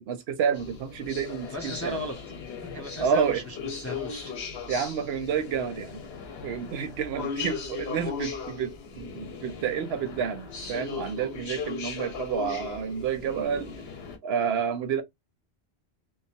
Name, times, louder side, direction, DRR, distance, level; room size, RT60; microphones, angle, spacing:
voice 1, 0.0-2.0 3.0-3.4 4.7-6.0 6.4-13.7 14.2-15.0, right 7 dB, 75° right, 0.8 m, -29 dB
sound 1, 0.5-14.2, left 5 dB, 70° left, 1.0 m, -38 dB
voice 2, 1.5-2.1 2.4-4.3 7.4-7.5, equal, 20° left, 0.4 m, -37 dB
3.1 x 2.0 x 2.7 m
omnidirectional pair, 1.1 m